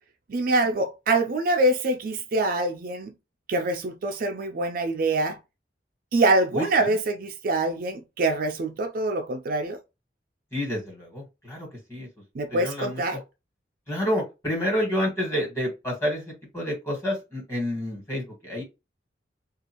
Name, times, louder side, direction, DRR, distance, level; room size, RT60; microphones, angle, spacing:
voice 1, 0.3-3.1 3.5-5.4 6.1-9.8 12.3-13.2, right 2 dB, 50° right, 0.4 m, -25 dB
voice 2, 6.5-6.9 10.5-12.1 12.5-13.0 13.9-16.2 16.5-18.6, equal, 15° left, 1.5 m, -29 dB
2.6 x 2.4 x 2.8 m
head